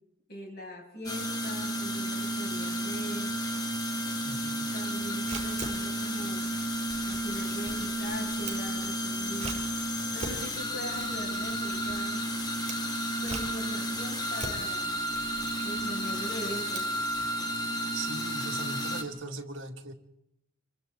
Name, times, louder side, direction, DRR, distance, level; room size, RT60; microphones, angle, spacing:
voice 1, 0.3-3.3 4.7-6.5 7.0-9.7 10.1-12.3 13.2-14.9 15.6-16.9, equal, 45° left, -1 dB, 7.4 m, -41 dB
sound 1, 1.0-19.0, equal, 20° left, 1.6 m, -32 dB
voice 2, 4.2-4.7 17.9-19.9, right 2 dB, 60° right, 3 dB, 2.1 m, -39 dB
Camera, 4.9-17.3, right 3 dB, 30° right, 5.7 m, -43 dB
26.5 x 24.5 x 4.1 m, 0.80 s
head